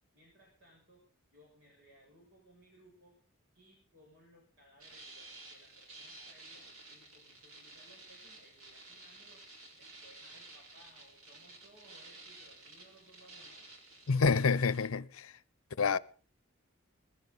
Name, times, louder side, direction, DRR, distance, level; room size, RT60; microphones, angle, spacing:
voice 1, 0.1-3.1 3.5-6.6 6.9-9.4 9.7-13.5, equal, 70° right, 7.2 m, -63 dB
sound 1, 4.8-14.9, right 2 dB, 90° right, 4.7 m, -53 dB
voice 2, 14.1-15.3 15.8-16.0, left 5 dB, 90° left, 0.6 m, -28 dB
20.5 x 15.0 x 4.0 m
head